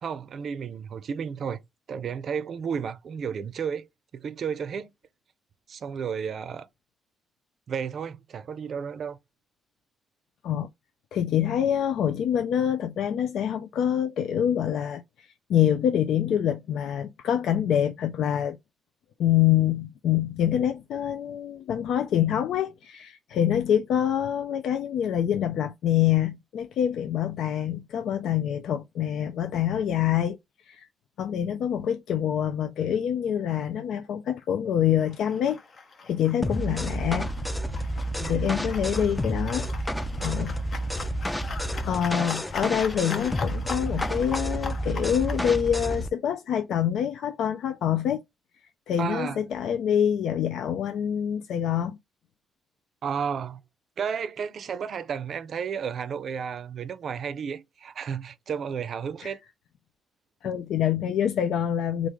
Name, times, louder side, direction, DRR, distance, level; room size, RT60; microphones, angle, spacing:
voice 1, 0.0-1.6 1.9-3.9 4.1-4.9 5.7-6.7 7.7-9.2 38.2-38.5 49.0-49.4 53.0-53.6 54.0-59.4, right 7 dB, 55° right, 0.5 m, -32 dB
voice 2, 11.1-18.6 19.2-30.4 30.6-30.9 31.2-35.6 36.0-37.3 37.9-38.0 38.3-39.7 40.2-40.5 41.9-48.2 48.9-52.0 59.2-59.3 60.4-62.1, left 9 dB, 75° left, 0.4 m, -26 dB
sound 1, 35.0-45.4, left 4 dB, 45° left, 0.8 m, -41 dB
sound 2, 36.4-46.1, equal, 10° left, 0.4 m, -30 dB
3.1 x 2.4 x 3.6 m
cardioid pair, 90°, 0 cm